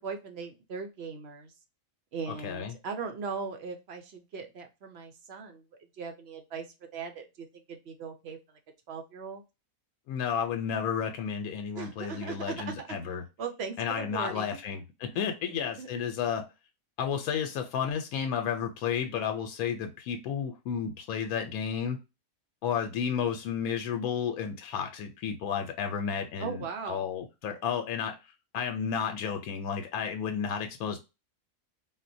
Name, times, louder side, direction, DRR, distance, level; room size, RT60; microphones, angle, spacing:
voice 1, 0.0-1.5 2.1-5.6 6.0-6.7 6.9-8.4 8.9-9.4 11.8-13.0 13.4-14.6 15.1-15.2 15.6-16.0 26.4-27.1, right 5 dB, 60° right, 4 dB, 0.7 m, -39 dB
voice 2, 2.3-2.7 10.1-13.2 13.8-16.4 17.0-22.0 22.6-28.2 28.5-31.0, left 7 dB, 90° left, 5 dB, 1.0 m, -32 dB
3.9 x 2.1 x 2.6 m, 0.25 s
omnidirectional pair, 1.5 m